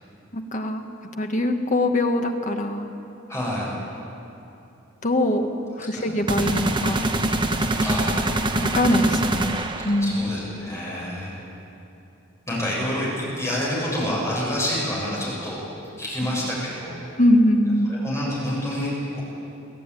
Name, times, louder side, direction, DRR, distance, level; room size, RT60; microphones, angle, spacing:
voice 1, 0.3-0.8 1.2-2.9 5.0-5.5 5.8-7.0 8.6-10.2 17.2-18.0, left 1 dB, 40° left, 4 dB, 1.6 m, -22 dB
voice 2, 3.3-3.7 5.8-6.1 7.8-8.2 10.0-11.3 12.5-15.6 16.0-17.0 17.9-19.3, equal, 15° left, -5 dB, 7.6 m, -28 dB
sound 1, 6.3-10.2, right 1 dB, 25° right, 1.1 m, -24 dB
23.0 x 14.5 x 10.0 m, 2.8 s
head